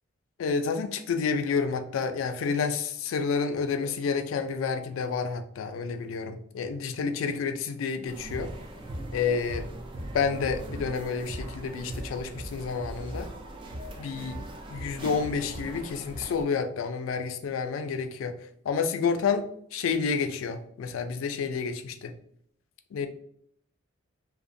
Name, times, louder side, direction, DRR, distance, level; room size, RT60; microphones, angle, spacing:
voice 1, 0.4-8.5 9.1-9.7 10.1-13.3 14.0-14.4 14.7-18.3 18.7-22.1 22.9-23.1, left 5 dB, 85° left, 8 dB, 0.3 m, -29 dB
sound 1, 8.1-16.4, right 1 dB, 25° right, 0.3 m, -39 dB
2.8 x 2.0 x 2.5 m, 0.67 s
head